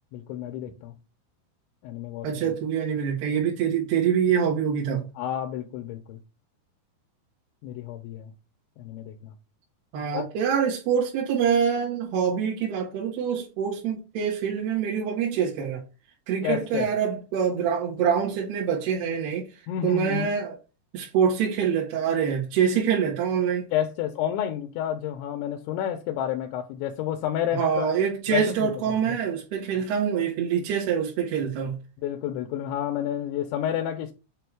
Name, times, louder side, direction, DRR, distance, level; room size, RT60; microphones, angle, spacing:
voice 1, 0.1-1.0 1.8-2.5 5.2-6.2 7.6-8.3 8.8-9.3 10.1-10.3 16.4-16.9 19.7-20.4 23.7-27.9 28.3-29.2 29.8-29.9 32.0-34.1, left 10 dB, 80° left, 2.9 m, -30 dB
voice 2, 2.2-5.1 9.9-15.8 16.3-19.5 19.8-20.6 20.9-23.7 27.5-31.8, right 7 dB, 65° right, 3.1 m, -25 dB
7.8 x 2.7 x 4.6 m
omnidirectional pair, 5.4 m